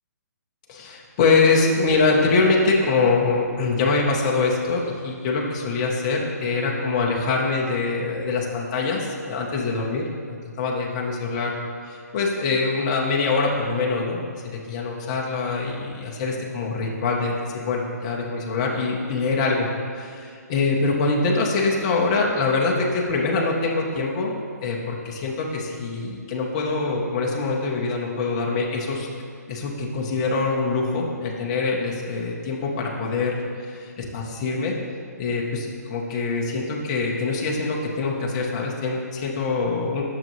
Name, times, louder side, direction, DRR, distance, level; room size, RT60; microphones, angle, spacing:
voice 1, 0.7-11.6 11.9-19.7 19.9-24.3 24.6-29.1 29.5-34.7 35.2-40.0, left 3 dB, 20° left, -2 dB, 0.7 m, -24 dB
8.7 x 6.6 x 3.0 m, 2.3 s
hypercardioid pair, 170°, 9 cm